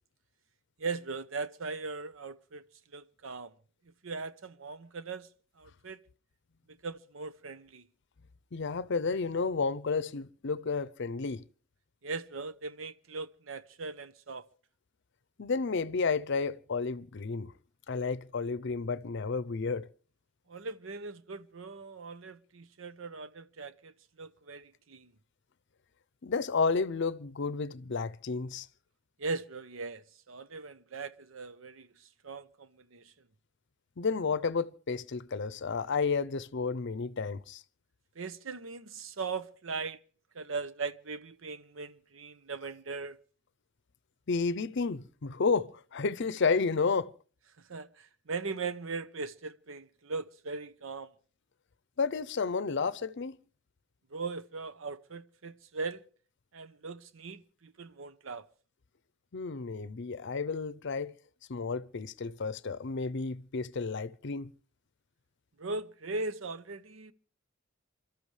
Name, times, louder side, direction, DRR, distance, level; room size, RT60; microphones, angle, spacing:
voice 1, 0.8-2.6 2.9-3.5 4.0-5.3 5.6-6.0 6.7-7.9 12.0-14.4 20.5-25.1 29.2-33.1 38.2-40.0 40.3-43.2 47.7-51.1 54.1-56.0 56.5-58.5 65.6-67.1, right 4 dB, 75° right, 0.8 m, -39 dB
voice 2, 8.5-11.4 15.4-17.5 17.9-19.9 26.2-28.7 34.0-37.6 44.3-47.1 52.0-53.4 59.3-61.1 61.5-64.5, left 4 dB, 60° left, 0.6 m, -31 dB
27.5 x 13.0 x 3.3 m
head